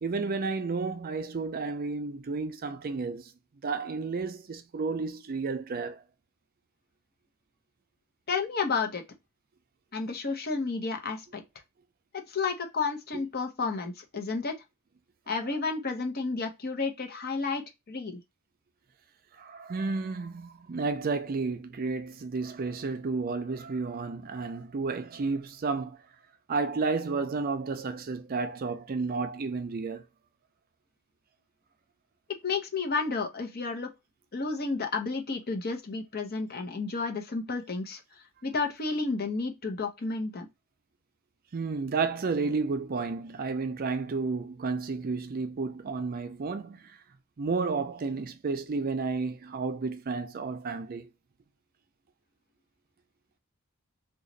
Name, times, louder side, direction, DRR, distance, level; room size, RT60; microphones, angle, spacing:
voice 1, 0.0-3.3 3.6-6.0 19.4-26.0 26.5-30.0 41.5-46.8 47.4-51.1, right 4 dB, 40° right, 0.4 m, -32 dB
voice 2, 8.3-9.0 9.9-11.4 12.1-14.5 15.3-17.6 17.9-18.2 32.4-33.9 34.3-38.0 38.4-40.5, left 4 dB, 45° left, 0.8 m, -31 dB
3.0 x 2.4 x 3.8 m
head